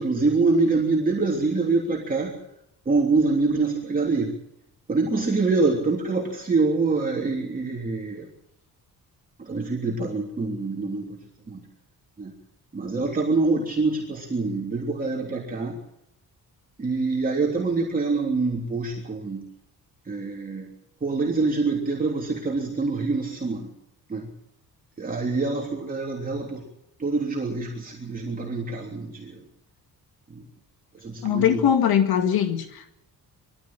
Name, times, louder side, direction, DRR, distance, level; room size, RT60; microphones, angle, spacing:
voice 1, 0.0-2.4 2.8-4.3 4.9-8.3 9.4-11.2 11.5-11.6 12.2-12.3 12.7-15.8 16.8-19.4 20.0-20.7 21.0-23.7 24.1-24.3 25.0-26.6 27.0-29.4 30.3-30.4 31.0-31.6, right 3 dB, 25° right, -2 dB, 3.4 m, -25 dB
voice 2, 31.2-32.9, left 9 dB, 80° left, 7 dB, 2.1 m, -21 dB
22.0 x 15.0 x 8.8 m, 0.80 s
cardioid pair, 170°, 37 cm